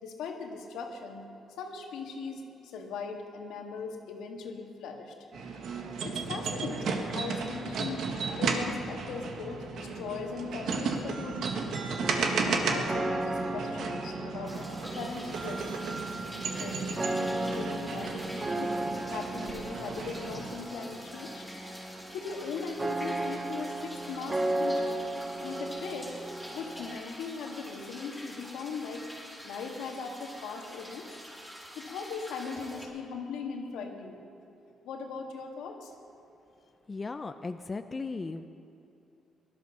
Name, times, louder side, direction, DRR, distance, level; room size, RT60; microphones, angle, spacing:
voice 1, 0.0-1.3 1.6-5.1 6.0-8.0 8.4-11.7 12.5-16.0 16.6-18.8 19.1-21.5 22.1-24.9 25.4-26.1 26.5-29.0 29.4-31.1 31.8-34.2 34.8-35.9, left 5 dB, 85° left, 2 dB, 1.9 m, -39 dB
sound 1, 5.3-20.6, right 4 dB, 70° right, 1.6 m, -34 dB
sound 2, 12.0-27.0, right 2 dB, 25° right, 1.0 m, -35 dB
sound 3, 14.5-32.8, equal, ahead, 3.8 m, -46 dB
voice 2, 36.9-38.5, left 3 dB, 30° left, 8 dB, 0.6 m, -36 dB
18.0 x 12.0 x 6.5 m, 2.8 s
cardioid pair, 90°, 0 cm